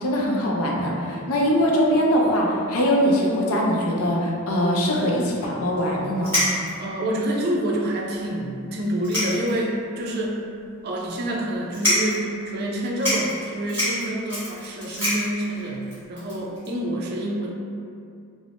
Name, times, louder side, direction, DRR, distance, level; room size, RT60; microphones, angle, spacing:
voice 1, 0.0-6.3, equal, 80° left, -2 dB, 0.5 m, -22 dB
sound 1, 5.8-5.9 6.2-6.9 7.6-7.7 7.9-8.0 8.8-9.7 10.1-10.2 11.0-11.2 11.7-12.2 12.7-12.8 13.0-16.7, left 1 dB, 10° left, 1.4 m, -26 dB
voice 2, 6.8-10.5 10.8-17.5, right 1 dB, 45° right, -1 dB, 0.3 m, -27 dB
3.3 x 2.0 x 2.5 m, 2.4 s
head